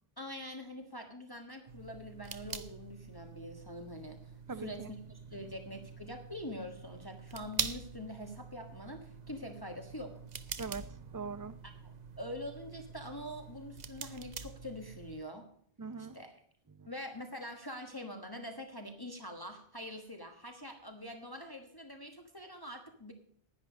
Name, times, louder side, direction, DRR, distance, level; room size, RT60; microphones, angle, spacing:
voice 1, 0.2-4.9 5.3-10.2 11.8-15.5 16.1-16.3 16.9-23.1, left 1 dB, 20° left, 4 dB, 1.4 m, -44 dB
sound 1, 1.7-15.2, right 6 dB, 45° right, 0.9 m, -45 dB
voice 2, 4.5-4.9 10.6-11.6 15.8-16.2 16.7-16.9, right 5 dB, 25° right, 13 dB, 0.4 m, -42 dB
11.0 x 10.0 x 5.1 m, 0.62 s
omnidirectional pair, 1.0 m